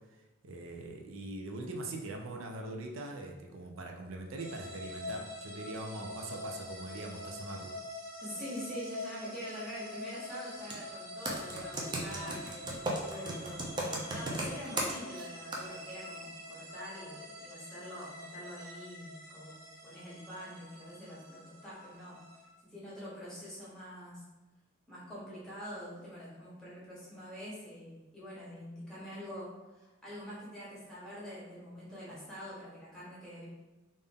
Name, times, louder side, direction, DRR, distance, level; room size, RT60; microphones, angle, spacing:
voice 1, 0.4-7.7, right 2 dB, 90° right, 2 dB, 0.5 m, -42 dB
sound 1, 4.4-22.5, left 1 dB, 70° right, 1.4 m, -45 dB
voice 2, 8.2-19.5 19.8-22.2 22.6-24.2 24.9-33.5, equal, 5° left, -8 dB, 1.2 m, -45 dB
Computer keyboard, 10.6-10.8 11.2-15.2 15.5-15.6, right 1 dB, 20° right, 0.5 m, -35 dB
3.7 x 2.6 x 3.5 m, 1.1 s
head